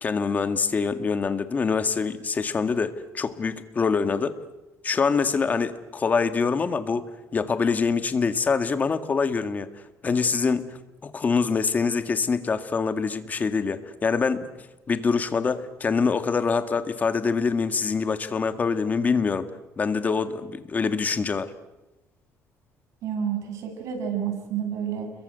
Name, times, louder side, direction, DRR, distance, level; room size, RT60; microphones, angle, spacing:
voice 1, 0.0-4.4 4.8-7.1 7.3-9.7 10.0-14.5 14.9-19.5 19.8-21.5, left 5 dB, 30° left, 10 dB, 1.9 m, -25 dB
voice 2, 23.0-25.1, right 8 dB, 70° right, 4 dB, 7.3 m, -29 dB
29.5 x 23.0 x 8.2 m, 0.99 s
cardioid pair, 135°, 6 cm